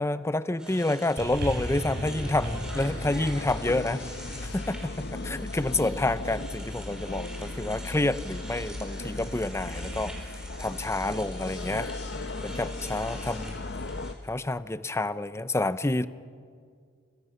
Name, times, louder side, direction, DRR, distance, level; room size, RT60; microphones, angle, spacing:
voice 1, 0.0-4.0 4.4-11.9 12.4-13.6 14.2-16.1, left 2 dB, 15° left, 14 dB, 0.6 m, -29 dB
sound 1, 0.6-14.1, right 1 dB, 5° right, 4.9 m, -46 dB
sound 2, 1.2-5.7 6.5-6.6, right 1 dB, 50° right, 4.4 m, -37 dB
sound 3, 2.0-14.1, left 2 dB, 55° left, 0.9 m, -37 dB
29.0 x 24.5 x 6.8 m, 2.2 s
head